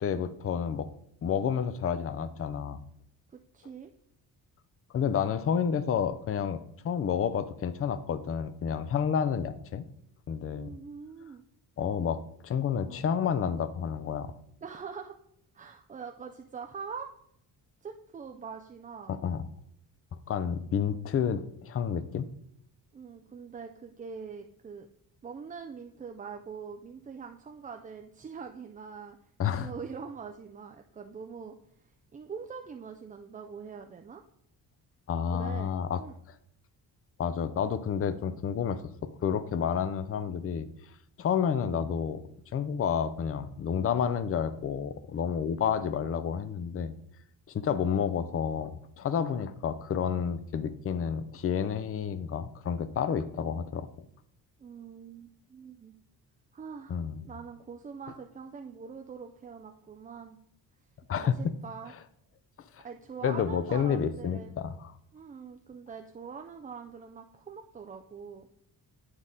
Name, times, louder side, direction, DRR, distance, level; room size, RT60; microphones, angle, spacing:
voice 1, 0.0-0.9 1.2-2.8 4.9-9.9 10.3-10.7 11.8-14.3 19.1-19.4 20.3-22.3 29.4-29.7 35.1-36.0 37.2-40.7 41.2-47.0 47.5-48.7 49.0-53.9 56.9-57.3 61.1-61.4 62.7-62.8 63.2-64.9, left 7 dB, 35° left, 13 dB, 0.5 m, -30 dB
voice 2, 3.3-3.9 10.5-11.4 14.6-15.2 15.5-17.1 17.8-19.1 22.9-24.9 25.2-29.2 29.5-31.6 31.8-34.2 35.3-35.7 36.0-36.1 54.6-55.9 56.5-60.4 61.2-61.9 62.8-64.5 65.1-68.5, right 6 dB, 20° right, 4 dB, 0.3 m, -43 dB
9.7 x 4.0 x 3.7 m, 0.72 s
cardioid pair, 125°, 38 cm